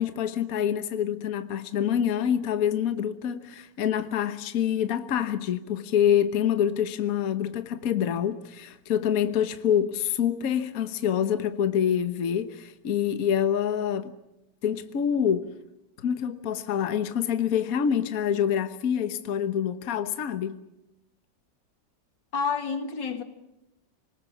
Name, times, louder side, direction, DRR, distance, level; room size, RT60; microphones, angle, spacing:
voice 1, 0.0-14.1 14.6-15.5 16.0-20.6, left 9 dB, 55° left, 1.4 m, -26 dB
voice 2, 22.3-23.2, left 5 dB, 85° left, 2.5 m, -29 dB
27.0 x 20.0 x 7.2 m
omnidirectional pair, 1.9 m